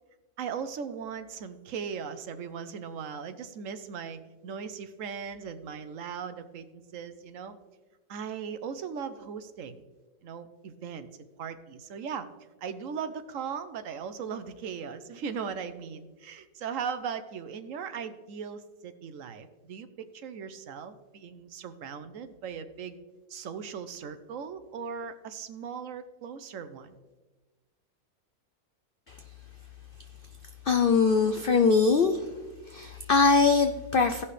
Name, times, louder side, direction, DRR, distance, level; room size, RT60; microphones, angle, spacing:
voice 1, 0.4-7.6 8.1-9.8 10.2-11.1 11.4-12.3 12.6-23.0 23.3-26.9, right 6 dB, 65° right, 10 dB, 1.0 m, -38 dB
voice 2, 30.6-32.3 32.7-34.2, left 4 dB, 75° left, 7 dB, 0.5 m, -22 dB
16.5 x 5.7 x 3.2 m, 1.2 s
omnidirectional pair, 1.6 m